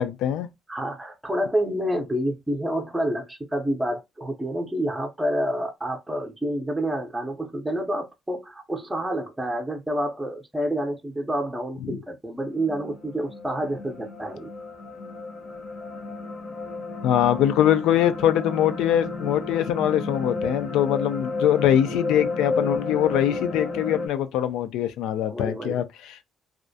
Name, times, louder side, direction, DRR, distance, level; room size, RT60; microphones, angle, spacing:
voice 1, 0.0-0.5 11.8-12.0 17.0-26.2, left 11 dB, 85° left, 0.3 m, -23 dB
voice 2, 0.7-14.5 25.3-25.8, right 1 dB, 10° right, 0.5 m, -28 dB
sound 1, 12.4-24.1, left 3 dB, 55° left, 0.7 m, -32 dB
2.4 x 2.1 x 2.6 m
cardioid pair, 95°, 0 cm